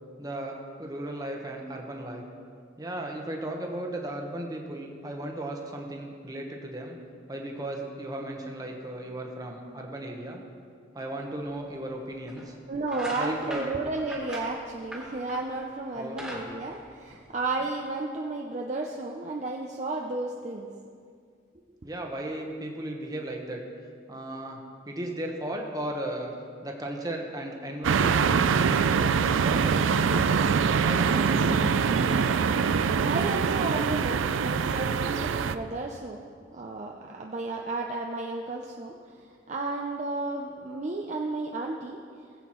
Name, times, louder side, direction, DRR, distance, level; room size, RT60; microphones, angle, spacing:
voice 1, 0.2-2.2 2.8-7.0 7.3-10.4 10.9-12.5 13.1-13.8 15.9-16.4 17.6-17.7 21.8-23.6 24.1-26.3 26.6-29.1 29.4-30.4 30.9-32.1, right 1 dB, 20° right, 1 dB, 1.1 m, -36 dB
sound 1, 11.5-11.6 12.3-12.5 12.8-15.6 15.9-17.6, equal, 5° right, 1.7 m, -40 dB
voice 2, 12.7-20.7 32.7-36.2 36.5-42.0, right 2 dB, 35° right, 0 dB, 0.5 m, -33 dB
sound 2, 27.8-35.6, right 6 dB, 90° right, 0.4 m, -24 dB
18.5 x 8.0 x 3.1 m, 2.2 s
head